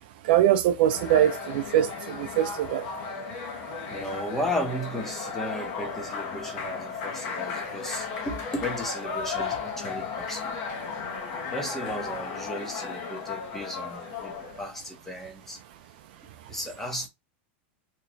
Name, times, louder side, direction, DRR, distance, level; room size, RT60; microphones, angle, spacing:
voice 1, 0.2-2.9, right 11 dB, 55° right, 0.4 m, -23 dB
sound 1, 0.9-14.6, left 5 dB, 40° left, 0.7 m, -35 dB
voice 2, 3.9-10.6 11.5-15.6 16.5-17.1, left 1 dB, 5° left, 0.7 m, -35 dB
2.9 x 2.2 x 3.8 m
supercardioid pair, 165°, 6 cm